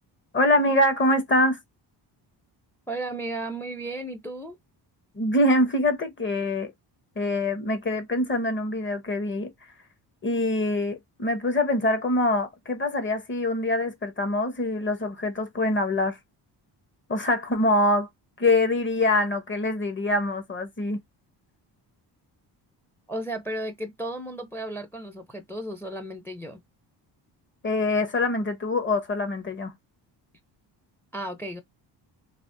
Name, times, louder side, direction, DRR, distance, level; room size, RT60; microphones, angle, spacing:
voice 1, 0.3-1.6 5.2-6.7 7.2-9.5 10.2-16.2 17.1-18.1 18.4-21.0 27.6-29.7, left 1 dB, 30° left, 1.0 m, -24 dB
voice 2, 2.9-4.6 23.1-26.6 31.1-31.6, right 1 dB, 5° left, 0.5 m, -34 dB
3.3 x 2.9 x 2.6 m
cardioid pair, 125°, 42 cm